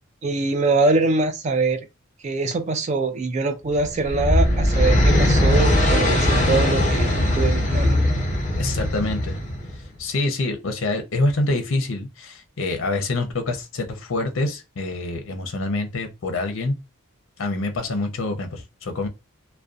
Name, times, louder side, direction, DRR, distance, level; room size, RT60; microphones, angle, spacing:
voice 1, 0.2-1.8 2.2-8.0, right 3 dB, 35° right, 0.4 m, -23 dB
sound 1, 3.8-9.8, left 1 dB, 35° left, 0.9 m, -20 dB
voice 2, 8.6-9.4 9.7-16.7 17.4-19.1, left 2 dB, 65° left, 0.6 m, -26 dB
2.5 x 2.1 x 2.4 m
head